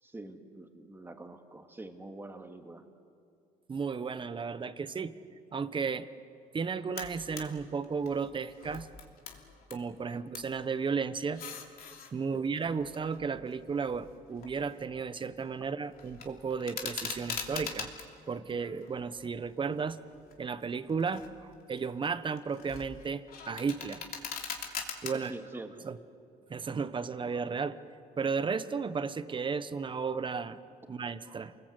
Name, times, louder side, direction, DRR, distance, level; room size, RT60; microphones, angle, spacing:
voice 1, 0.0-2.8 12.3-12.7 25.1-25.9, right 2 dB, 15° right, 5 dB, 2.2 m, -46 dB
voice 2, 3.7-5.1 5.5-6.1 6.5-8.9 9.7-11.4 12.1-17.9 18.3-20.0 20.4-24.0 25.0-25.3 25.9-26.0 26.5-27.8 28.2-30.6 30.9-31.5, right 5 dB, 30° right, 13 dB, 1.0 m, -34 dB
sound 1, 7.0-7.5 7.8-9.8 10.1-10.5 11.2-12.1 12.8-14.9 15.2-15.6 15.9-18.1 18.6-19.5 20.0-20.3 20.9-21.4 21.8-25.1, left 6 dB, 60° left, 3.0 m, -42 dB
29.0 x 20.5 x 8.2 m, 2.4 s
cardioid pair, 110°, 17 cm